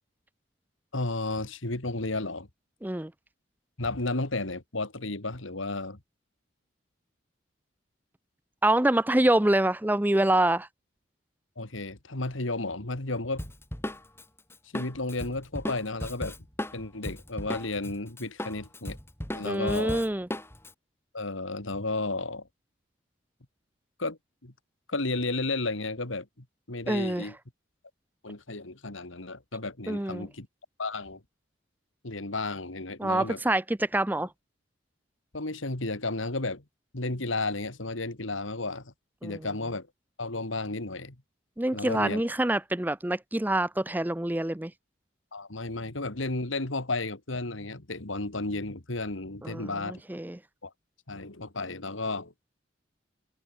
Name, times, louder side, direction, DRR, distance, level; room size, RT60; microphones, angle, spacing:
voice 1, 0.9-2.5 3.8-6.0 11.6-13.5 14.7-16.4 16.7-19.0 19.3-20.1 21.1-22.5 24.0-24.5 24.9-27.4 28.2-30.5 30.8-31.2 32.0-33.4 35.3-36.6 36.9-38.9 39.2-39.9 40.2-41.2 41.7-42.2 45.3-50.0 50.6-50.7 51.1-52.3, left 2 dB, 80° left, 2.5 m, -33 dB
voice 2, 8.6-10.7 19.4-20.3 26.9-27.2 29.9-30.3 33.0-34.3 39.2-39.4 41.6-44.7 49.4-50.4, right 1 dB, 10° right, 0.5 m, -26 dB
Drum kit, 13.4-17.9 18.2-20.7, equal, 10° left, 7.6 m, -36 dB
head